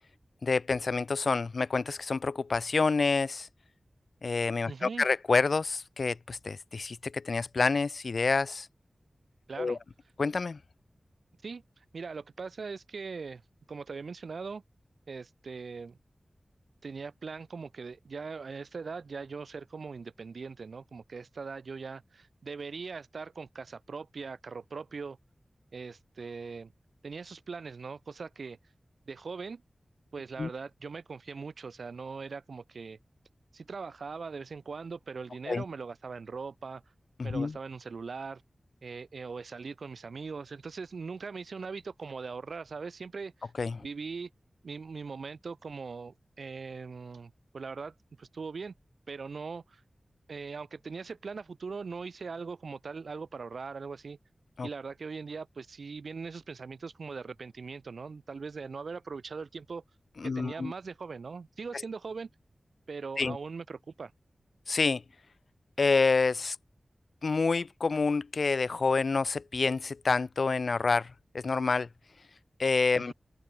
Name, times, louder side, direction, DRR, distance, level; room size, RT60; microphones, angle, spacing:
voice 1, 0.4-3.5 4.2-8.7 9.6-9.8 10.2-10.6 30.4-30.5 35.5-35.6 37.2-37.5 43.6-43.8 54.6-54.7 60.2-60.7 63.2-63.4 64.7-65.0 65.8-66.6 67.2-71.9 72.6-73.1, left 4 dB, 75° left, 2.1 m, -28 dB
voice 2, 4.7-5.0 9.5-9.8 11.4-13.4 13.7-14.6 15.1-16.0 16.8-25.2 25.7-26.7 27.0-28.6 29.1-29.6 30.1-33.0 33.5-36.8 37.2-38.4 38.8-43.5 43.8-44.3 44.6-48.7 49.1-49.8 50.3-54.2 54.6-59.8 60.2-62.3 62.9-64.1 73.0-73.1, right 4 dB, 85° right, 3.4 m, -40 dB
open air
wide cardioid pair, 65°, 0 cm